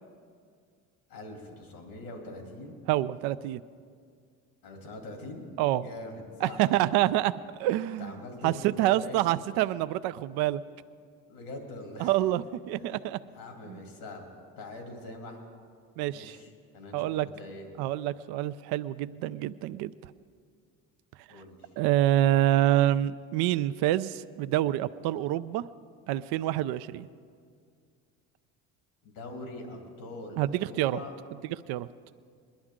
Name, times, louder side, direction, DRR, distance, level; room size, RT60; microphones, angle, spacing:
voice 1, 1.1-2.8 4.6-5.5 5.8-7.0 8.0-9.2 11.3-12.1 12.7-14.2 14.6-15.4 16.1-17.7 21.3-21.6 29.0-31.2, left 2 dB, 80° left, 1 dB, 2.7 m, -43 dB
voice 2, 2.9-3.6 5.6-5.9 6.4-7.3 7.6-8.1 8.4-10.6 12.0-13.2 13.7-13.8 16.0-16.4 16.9-17.3 17.8-20.1 21.3-21.4 21.8-25.6 26.1-27.1 30.4-31.0 31.7-31.9, right 14 dB, 70° right, 13 dB, 0.5 m, -27 dB
21.5 x 11.5 x 3.7 m, 2.1 s
supercardioid pair, 70°, 40 cm